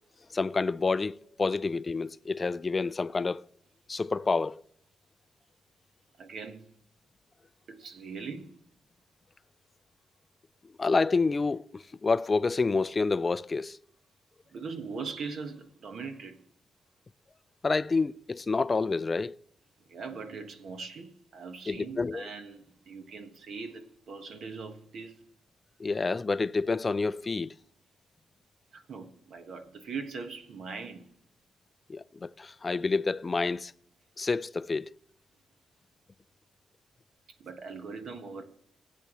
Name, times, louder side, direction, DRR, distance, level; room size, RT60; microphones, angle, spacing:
voice 1, 0.3-3.4 3.9-4.6 10.8-13.8 17.6-19.4 21.7-22.2 25.8-27.5 31.9-33.7 34.2-34.9, left 4 dB, 25° left, 0.3 m, -28 dB
voice 2, 6.2-6.7 7.7-8.6 14.5-16.4 19.9-25.2 28.7-31.1 37.4-38.4, right 4 dB, 60° right, 1.4 m, -41 dB
16.0 x 8.5 x 3.1 m
wide cardioid pair, 140°, 0 cm